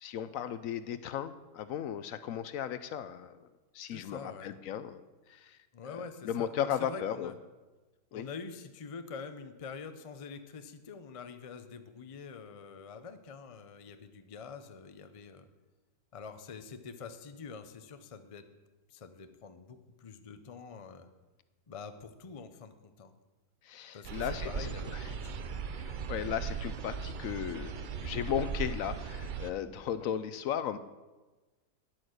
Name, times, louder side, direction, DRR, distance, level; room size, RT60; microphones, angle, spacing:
voice 1, 0.0-3.4 3.7-5.0 5.3-5.6 5.9-7.3 8.1-8.3 23.7-25.0 25.7-30.8, left 9 dB, 70° left, 13 dB, 0.9 m, -36 dB
voice 2, 3.9-4.5 5.7-7.3 8.1-15.5 16.1-18.5 18.9-21.1 21.7-23.1 23.9-25.5, left 5 dB, 45° left, 9 dB, 0.4 m, -46 dB
sound 1, 24.0-29.5, right 6 dB, 80° right, 0.4 m, -38 dB
10.0 x 8.8 x 6.4 m, 1.2 s
omnidirectional pair, 1.6 m